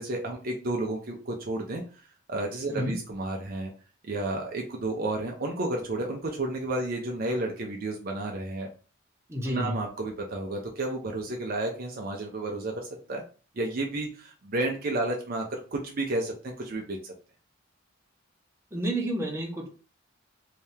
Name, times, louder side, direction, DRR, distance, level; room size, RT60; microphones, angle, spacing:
voice 1, 0.0-1.8 2.3-3.7 4.1-8.7 9.4-13.2 13.6-17.1, right 2 dB, 45° right, 1 dB, 0.6 m, -31 dB
voice 2, 9.3-9.7 18.7-19.7, right 1 dB, 15° right, -1 dB, 0.9 m, -30 dB
3.3 x 2.7 x 3.3 m, 0.37 s
head